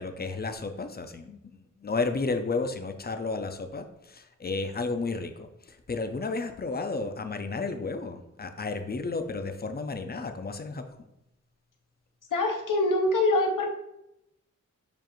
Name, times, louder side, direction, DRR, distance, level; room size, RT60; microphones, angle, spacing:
voice 1, 0.0-11.0, left 3 dB, 30° left, 7 dB, 0.4 m, -32 dB
voice 2, 12.3-13.7, left 2 dB, 80° left, 2 dB, 0.8 m, -24 dB
6.9 x 2.5 x 3.0 m, 0.85 s
wide cardioid pair, 75°, 31 cm